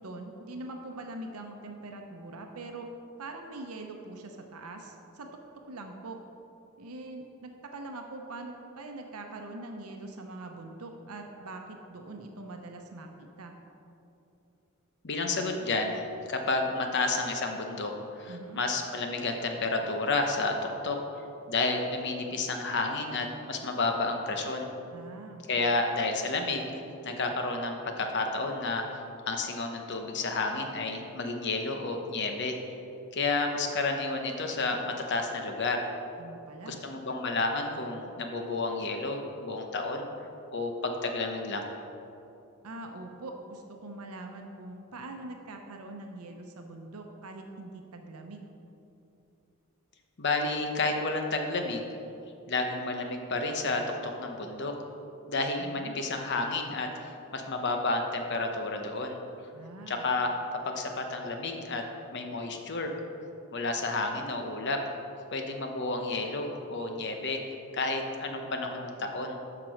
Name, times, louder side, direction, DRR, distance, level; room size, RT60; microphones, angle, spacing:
voice 1, 0.0-2.9 3.2-5.4 5.7-6.2 6.8-13.5 18.3-18.6 24.9-25.4 36.2-36.8 42.6-48.5 55.6-55.9 59.5-60.1, right 2 dB, 85° right, 3 dB, 0.8 m, -43 dB
voice 2, 15.0-21.0 21.5-24.7 25.5-32.6 33.1-35.9 36.6-40.0 40.5-41.7 50.2-51.9 52.5-54.8 55.3-59.2 59.9-62.9 63.5-64.8 65.3-69.4, left 3 dB, 50° left, 4 dB, 0.9 m, -31 dB
7.6 x 6.1 x 6.4 m, 2.7 s
head